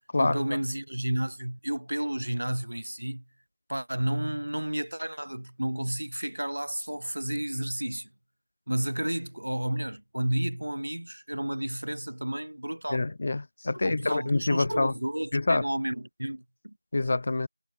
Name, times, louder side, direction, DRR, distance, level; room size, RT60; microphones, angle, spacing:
voice 1, 0.2-3.2 3.7-8.1 8.7-13.0 13.8-16.8, right 1 dB, 85° right, 1.3 m, -31 dB
voice 2, 12.9-14.9 15.3-15.6 16.9-17.5, left 2 dB, 25° left, 0.4 m, -26 dB
figure-of-eight pair, 180°, 0 cm